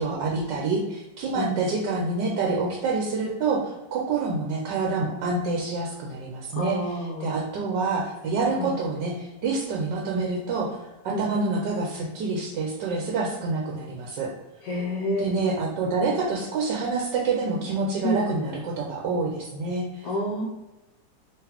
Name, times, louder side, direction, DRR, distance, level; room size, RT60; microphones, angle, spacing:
voice 1, 0.0-10.8 11.0-14.3 15.2-19.9, right 3 dB, 80° right, -2 dB, 1.3 m, -27 dB
voice 2, 6.5-7.3 8.6-8.7 11.1-11.3 14.6-15.3 18.0-18.4 20.0-20.4, equal, 75° left, -1 dB, 1.3 m, -28 dB
3.9 x 3.4 x 2.9 m, 1.0 s
omnidirectional pair, 1.9 m